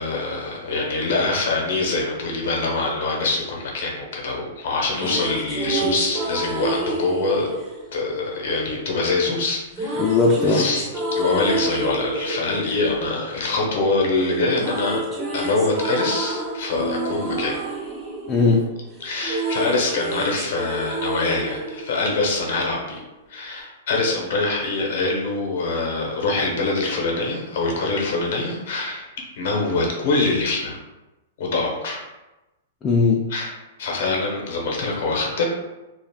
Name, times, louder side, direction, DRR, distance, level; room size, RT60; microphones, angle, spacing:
voice 1, 0.0-7.5 7.9-10.0 10.4-15.0 15.3-17.6 19.0-23.0 23.3-29.1 29.4-30.8 31.4-32.0 33.3-33.5 33.8-35.4, left 3 dB, 70° left, -1 dB, 0.9 m, -24 dB
sound 1, 4.7-8.9 9.7-14.0 14.2-22.8, right 2 dB, 20° right, 0.6 m, -29 dB
voice 2, 10.0-10.7 18.3-18.6 32.8-33.2, left 3 dB, 25° left, -2 dB, 0.4 m, -18 dB
2.4 x 2.1 x 3.5 m, 1.0 s
hypercardioid pair, 130°, 0 cm